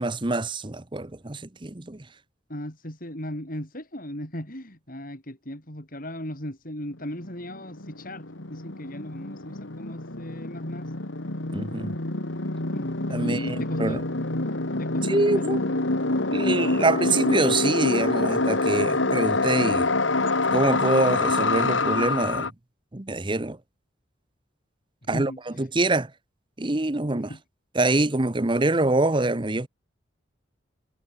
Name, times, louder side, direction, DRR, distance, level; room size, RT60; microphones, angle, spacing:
voice 1, 0.0-2.0 11.5-11.9 13.1-14.0 15.1-15.6 16.3-19.9 20.5-22.5 22.9-23.6 25.1-25.3 25.6-26.1 26.6-27.3 27.7-29.7, right 2 dB, 25° right, 1.0 m, -25 dB
voice 2, 2.5-10.9 12.7-14.0 14.8-15.6 25.1-25.7 27.2-27.4, equal, 45° left, 7.9 m, -37 dB
sound 1, 7.0-7.1 7.2-22.5, left 2 dB, 80° left, 2.4 m, -26 dB
head